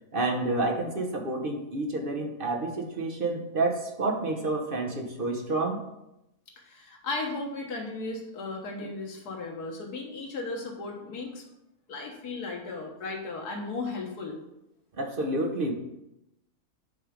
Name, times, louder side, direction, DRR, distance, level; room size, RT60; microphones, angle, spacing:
voice 1, 0.1-5.8 15.0-15.7, right 2 dB, 40° right, 2 dB, 1.0 m, -29 dB
voice 2, 6.6-11.4 11.9-14.4, left 3 dB, 85° left, 0 dB, 1.7 m, -35 dB
9.6 x 3.4 x 5.0 m, 0.87 s
omnidirectional pair, 1.6 m